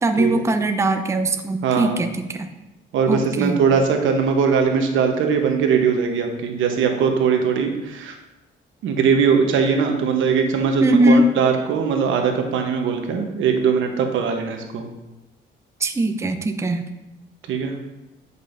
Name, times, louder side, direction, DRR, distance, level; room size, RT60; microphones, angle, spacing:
voice 1, 0.0-2.5 3.1-3.6 10.8-11.3 15.8-16.9, right 1 dB, 15° right, 6 dB, 0.5 m, -20 dB
voice 2, 1.6-2.0 2.9-8.1 8.8-14.9 17.5-17.7, right 6 dB, 80° right, 4 dB, 1.0 m, -20 dB
9.6 x 5.4 x 2.6 m, 0.99 s
cardioid pair, 90°, 20 cm